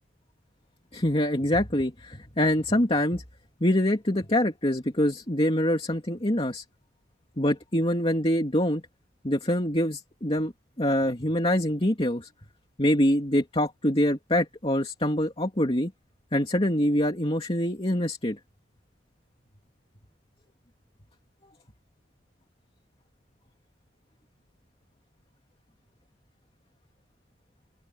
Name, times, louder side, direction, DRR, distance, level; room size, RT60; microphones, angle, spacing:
voice 1, 0.9-3.2 3.6-6.6 7.4-8.8 9.2-10.5 10.8-12.3 12.8-15.9 16.3-18.4, left 1 dB, 30° left, 2.8 m, -25 dB
open air
head